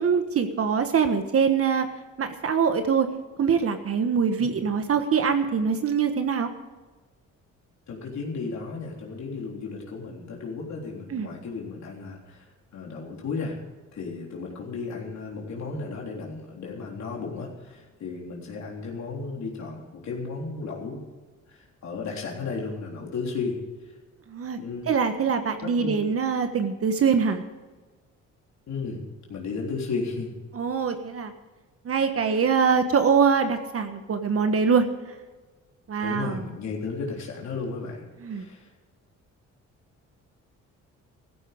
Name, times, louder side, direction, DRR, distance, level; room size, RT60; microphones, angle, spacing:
voice 1, 0.0-1.9 2.2-3.1 3.4-6.5 11.1-11.3 24.3-24.6 24.9-27.4 30.5-31.3 31.8-34.9 35.9-36.4 38.2-38.5, right 6 dB, 50° right, 8 dB, 1.4 m, -23 dB
voice 2, 7.9-13.6 13.9-21.0 21.5-23.6 24.6-24.9 25.8-26.0 28.7-29.0 29.3-30.3 32.2-32.4 36.0-38.0 38.3-38.7, left 4 dB, 65° left, -1 dB, 3.7 m, -34 dB
15.0 x 13.5 x 5.2 m, 1.3 s
cardioid pair, 90°, 30 cm